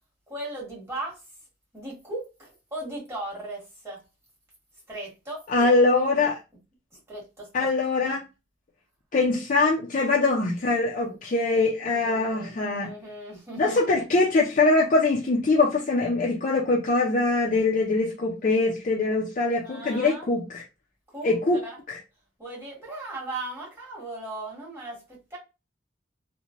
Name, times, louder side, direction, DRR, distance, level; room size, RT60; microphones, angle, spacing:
voice 1, 0.3-1.2 1.7-4.0 4.9-5.7 6.1-6.3 6.9-7.7 11.0-11.1 12.0-14.0 19.6-20.3 21.1-21.3 21.6-21.7 22.4-25.0 25.3-25.4, right 2 dB, 15° right, 1.3 m, -37 dB
voice 2, 5.5-6.3 7.5-8.2 9.1-12.9 13.6-20.6 21.2-21.6 21.9-22.0, left 3 dB, 45° left, 0.4 m, -23 dB
3.0 x 2.1 x 2.5 m
head